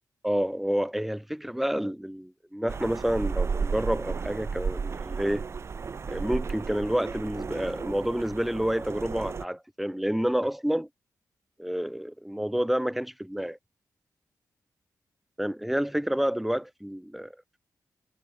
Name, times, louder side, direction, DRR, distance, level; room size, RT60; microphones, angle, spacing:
voice 1, 0.2-5.4 6.1-10.9 11.6-13.6 15.4-17.3, equal, 5° right, 1.6 m, -29 dB
sound 1, 2.7-9.4, right 5 dB, 45° right, 1.8 m, -33 dB
wide cardioid pair, 120°, 6 cm